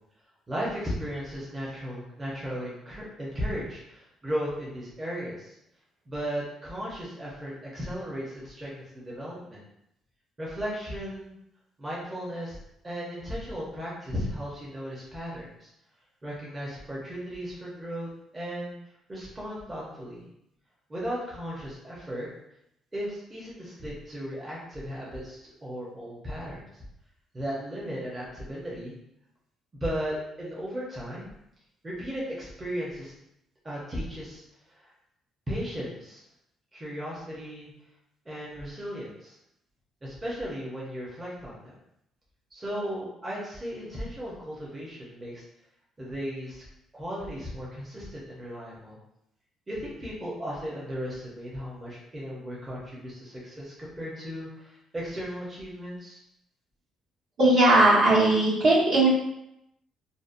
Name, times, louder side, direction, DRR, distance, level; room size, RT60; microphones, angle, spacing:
voice 1, 0.5-5.5 6.1-9.6 10.4-11.3 11.8-12.6 12.8-15.7 16.2-18.8 19.1-20.2 20.9-22.3 22.9-26.6 27.3-28.9 29.8-31.3 31.8-33.1 33.6-34.4 34.8-34.9 35.5-36.2 36.7-37.7 38.3-39.4 40.0-41.7 42.5-45.4 46.0-46.6 46.9-49.0 49.7-56.2, equal, 20° right, -6 dB, 0.7 m, -36 dB
voice 2, 57.4-59.1, right 2 dB, 65° right, -8 dB, 1.1 m, -19 dB
2.6 x 2.0 x 2.5 m, 0.80 s
cardioid pair, 110°, 0 cm